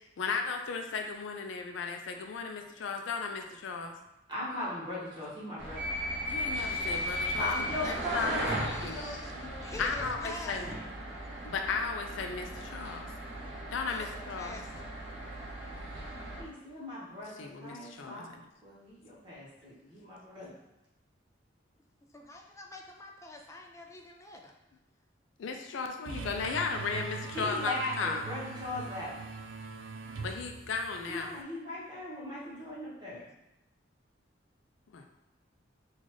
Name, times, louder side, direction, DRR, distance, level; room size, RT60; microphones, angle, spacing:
voice 1, 0.2-3.9 6.3-7.5 7.8-8.5 8.8-9.2 9.8-10.7 11.4-13.1 13.7-14.6 17.4-18.4 25.4-28.2 30.2-31.3 34.9-35.0, left 4 dB, 85° left, 4 dB, 0.4 m, -35 dB
voice 2, 4.3-5.9 7.3-8.5 8.9-9.8 16.4-18.3 18.6-20.5 27.3-29.3 31.1-33.3, left 1 dB, 25° right, -8 dB, 1.3 m, -38 dB
sound 1, 5.6-16.4, equal, 60° right, 0.9 m, -37 dB
voice 3, 7.8-9.1 9.6-10.6 13.9-14.9 22.1-24.5, left 2 dB, 15° left, 2 dB, 0.4 m, -46 dB
sound 2, 26.0-31.4, right 4 dB, 80° right, 0.4 m, -42 dB
3.9 x 2.4 x 3.1 m, 0.92 s
head